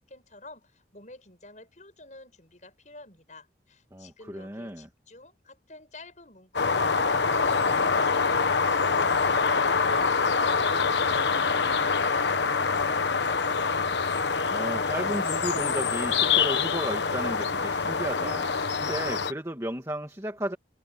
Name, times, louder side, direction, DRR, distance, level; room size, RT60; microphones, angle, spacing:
voice 1, 0.0-8.7, left 2 dB, 40° left, 7.9 m, -49 dB
voice 2, 3.9-4.9 14.5-20.6, right 1 dB, 15° right, 2.2 m, -34 dB
sound 1, 6.5-19.3, left 5 dB, 75° left, 1.1 m, -25 dB
head